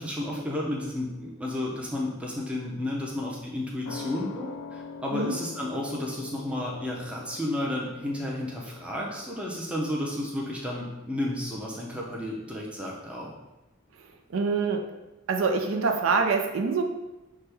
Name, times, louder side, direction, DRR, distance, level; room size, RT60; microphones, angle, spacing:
voice 1, 0.0-13.3, left 1 dB, 5° right, -3 dB, 0.6 m, -32 dB
sound 1, 3.8-10.9 11.2-11.3, left 4 dB, 90° left, 0.4 m, -44 dB
voice 2, 14.0-14.9 15.3-16.8, right 4 dB, 65° right, 3 dB, 0.4 m, -26 dB
5.9 x 2.2 x 3.3 m, 1.0 s
head